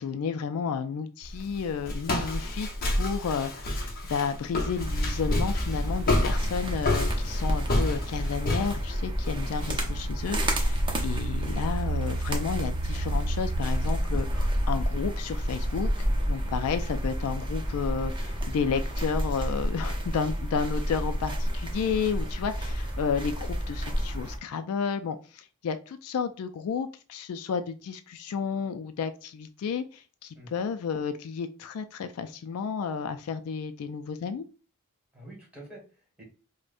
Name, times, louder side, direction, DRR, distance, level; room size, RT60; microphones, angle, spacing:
voice 1, 0.0-15.9 16.3-34.5, left 6 dB, 70° left, 9 dB, 0.3 m, -32 dB
Walk footsteps, 1.2-9.8, left 1 dB, 40° left, 0.7 m, -30 dB
sound 1, 4.8-24.4, equal, 20° right, 0.6 m, -29 dB
voice 2, 9.4-9.7 30.3-30.7 35.1-36.2, right 1 dB, 5° right, -3 dB, 1.6 m, -48 dB
4.8 x 2.1 x 2.5 m, 0.36 s
head